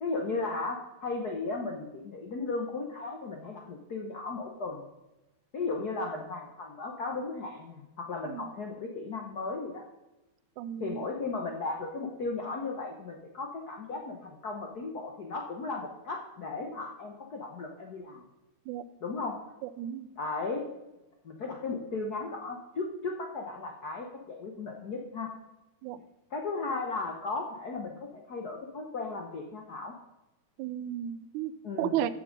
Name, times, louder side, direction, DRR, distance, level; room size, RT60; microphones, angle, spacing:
voice 1, 0.0-4.9 5.5-9.8 10.8-18.2 19.0-19.4 20.1-20.7 21.2-25.3 26.3-29.9 31.6-32.0, left 3 dB, 75° left, 1 dB, 0.9 m, -36 dB
voice 2, 10.6-11.0 18.7-18.8 19.6-20.1 25.8-26.0 30.6-31.5 31.8-32.1, right 10 dB, 85° right, 14 dB, 2.1 m, -33 dB
13.5 x 6.9 x 5.2 m, 1.0 s
omnidirectional pair, 3.4 m